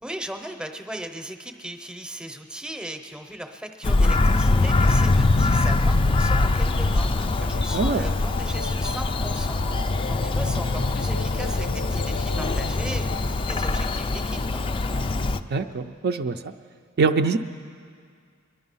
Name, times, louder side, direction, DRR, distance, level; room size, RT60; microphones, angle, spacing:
voice 1, 0.0-9.7 10.1-14.7, right 1 dB, 5° right, 5 dB, 0.7 m, -37 dB
Bird vocalization bird call bird song, 3.8-15.4, left 2 dB, 25° left, 0.3 m, -23 dB
sound 1, 4.7-13.4, left 4 dB, 85° left, 0.5 m, -36 dB
voice 2, 7.7-8.1 15.5-16.5 17.0-17.4, right 4 dB, 50° right, 7 dB, 0.4 m, -23 dB
22.0 x 11.0 x 5.5 m, 2.1 s
head